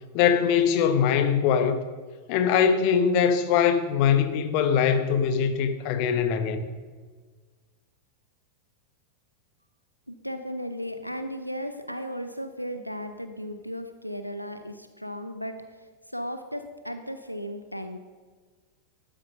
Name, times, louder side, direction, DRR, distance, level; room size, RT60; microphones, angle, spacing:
voice 1, 0.1-1.8 2.3-6.6, left 7 dB, 45° left, 1.0 m, -22 dB
voice 2, 10.1-18.0, equal, 90° left, 0.7 m, -35 dB
12.5 x 9.0 x 5.3 m
figure-of-eight pair, 90°, 0 cm